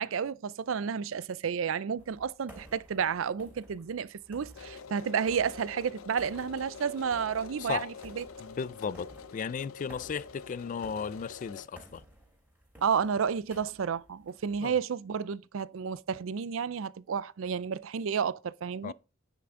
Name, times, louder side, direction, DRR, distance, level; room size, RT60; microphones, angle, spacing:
voice 1, 0.0-8.2 12.8-18.9, right 7 dB, 70° right, 0.4 m, -31 dB
sound 1, 2.0-14.7, equal, 10° right, 3.3 m, -55 dB
sound 2, 4.6-11.7, left 5 dB, 90° left, 0.6 m, -47 dB
voice 2, 8.4-12.0 14.6-14.7 18.8-18.9, left 6 dB, 40° left, 0.3 m, -35 dB
9.5 x 6.0 x 3.7 m
head